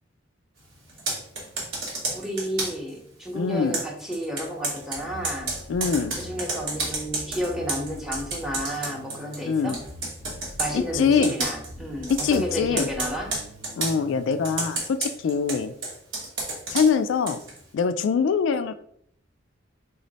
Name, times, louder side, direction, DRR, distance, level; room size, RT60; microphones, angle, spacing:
Computer keyboard, 0.9-2.9 3.7-9.4 9.7-10.7 11.2-11.7 12.0-12.4 12.8-14.0 14.4-17.6, right 3 dB, 85° right, 1.2 m, -31 dB
voice 1, 2.1-5.5 6.1-9.8 10.6-13.3, equal, ahead, 0 dB, 0.8 m, -31 dB
voice 2, 3.3-3.8 5.7-6.2 9.4-9.7 10.7-11.3 12.2-12.9 13.8-15.7 16.7-17.4 17.7-18.7, left 5 dB, 70° left, 11 dB, 0.3 m, -23 dB
Bass guitar, 5.0-14.5, left 1 dB, 65° right, 1.1 m, -43 dB
3.9 x 2.1 x 3.9 m, 0.67 s
head